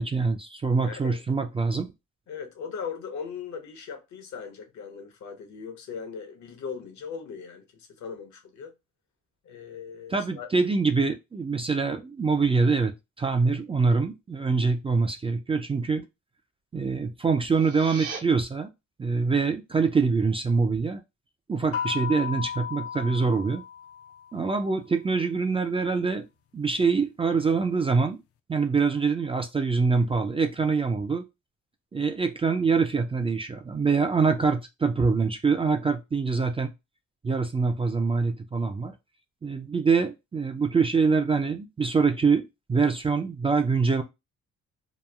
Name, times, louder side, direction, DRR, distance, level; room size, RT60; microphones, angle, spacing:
voice 1, 0.0-1.9 10.1-16.0 16.7-18.7 19.0-21.0 21.5-23.6 24.3-26.3 26.5-28.2 28.5-31.2 31.9-36.7 37.2-38.9 39.4-42.4 42.7-44.0, right 4 dB, 20° right, 0.3 m, -24 dB
voice 2, 0.8-1.2 2.3-8.7 9.4-10.5, left 6 dB, 70° left, 0.9 m, -39 dB
sound 1, 17.4-18.2, right 5 dB, 75° right, 0.9 m, -38 dB
sound 2, 21.7-24.4, left 8 dB, 50° left, 0.4 m, -34 dB
2.9 x 2.3 x 2.3 m
cardioid pair, 90°, 30 cm